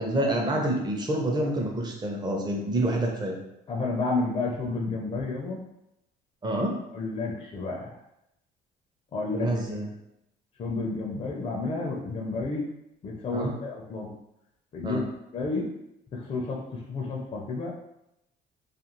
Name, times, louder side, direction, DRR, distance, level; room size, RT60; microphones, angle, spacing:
voice 1, 0.0-3.4 6.4-6.8 9.3-9.9 13.3-13.5 14.8-15.1, right 1 dB, 25° right, 1 dB, 0.6 m, -27 dB
voice 2, 3.7-5.6 6.9-7.9 9.1-9.5 10.6-12.6 13.0-14.1 14.7-15.0 15.3-15.7 16.1-17.7, left 3 dB, 35° left, -2 dB, 0.5 m, -31 dB
2.4 x 2.4 x 2.9 m, 0.83 s
cardioid pair, 110°, 17 cm